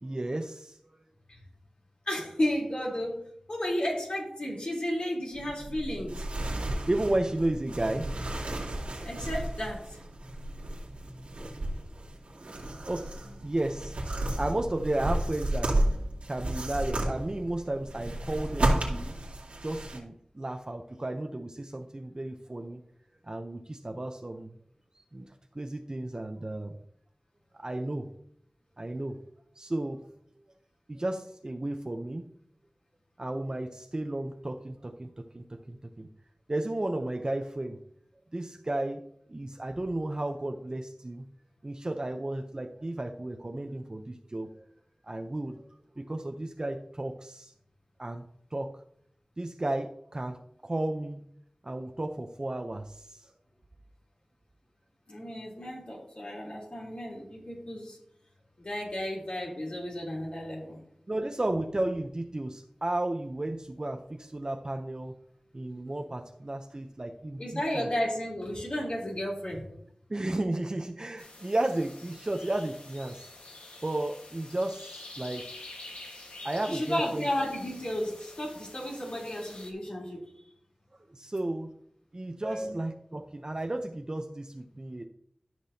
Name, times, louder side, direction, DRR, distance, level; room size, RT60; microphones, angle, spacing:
voice 1, 0.0-1.0 6.9-8.2 12.9-13.1 13.4-14.0 14.4-15.8 16.3-19.1 19.6-22.8 23.2-24.6 25.0-26.7 27.5-28.1 28.8-29.2 29.6-30.1 30.9-32.3 33.2-36.1 36.5-37.8 38.3-39.0 39.3-41.3 41.6-44.6 45.0-45.6 46.0-47.5 48.0-48.8 49.4-51.2 51.6-53.3 61.1-65.1 65.5-67.9 70.1-73.2 73.8-75.5 76.4-77.3 81.1-81.7 82.1-85.0, right 1 dB, 40° right, 5 dB, 0.7 m, -33 dB
voice 2, 2.0-6.2 9.0-10.0 55.1-58.0 58.6-60.8 67.4-69.6 76.7-80.2 82.4-82.7, left 1 dB, 60° left, -3 dB, 3.4 m, -33 dB
sound 1, 5.3-20.0, right 1 dB, 85° right, 2.3 m, -33 dB
sound 2, 71.2-79.7, left 2 dB, 90° left, 1.5 m, -47 dB
13.0 x 6.1 x 2.8 m, 0.67 s
wide cardioid pair, 50°, 2 cm